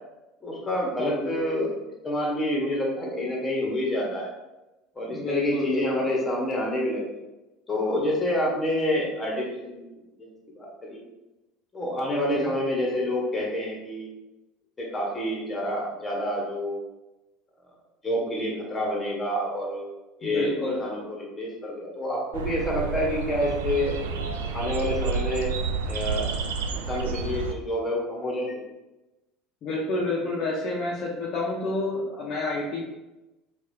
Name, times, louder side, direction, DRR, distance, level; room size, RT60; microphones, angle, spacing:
voice 1, 0.4-1.8 2.0-4.3 4.9-7.0 7.7-9.8 10.2-11.0 11.7-14.1 14.8-16.8 18.0-19.8 20.2-20.5 20.8-23.9 24.5-25.5 25.9-26.3 26.7-28.6, left 1 dB, 20° left, -2 dB, 1.3 m, -28 dB
voice 2, 1.0-1.3 5.1-5.8 12.1-12.5 20.2-20.8 29.6-32.8, left 2 dB, 50° left, -4 dB, 0.7 m, -29 dB
sound 1, 22.3-27.5, right 5 dB, 75° right, 0.3 m, -30 dB
4.6 x 2.5 x 2.8 m, 1.0 s
figure-of-eight pair, 65°, 0 cm